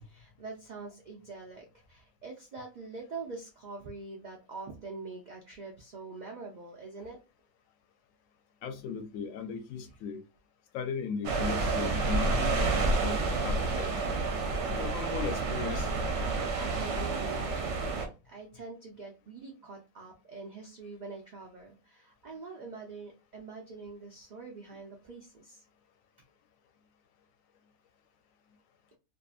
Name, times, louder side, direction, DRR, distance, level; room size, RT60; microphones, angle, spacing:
voice 1, 0.1-7.2 16.3-25.6, right 3 dB, 80° right, 0.4 m, -44 dB
voice 2, 8.6-10.2 10.7-13.2 13.4-14.0 14.7-15.9, left 6 dB, 75° left, 0.9 m, -37 dB
sound 1, 11.2-18.1, right 3 dB, 60° right, 0.9 m, -29 dB
2.6 x 2.5 x 2.4 m
omnidirectional pair, 1.5 m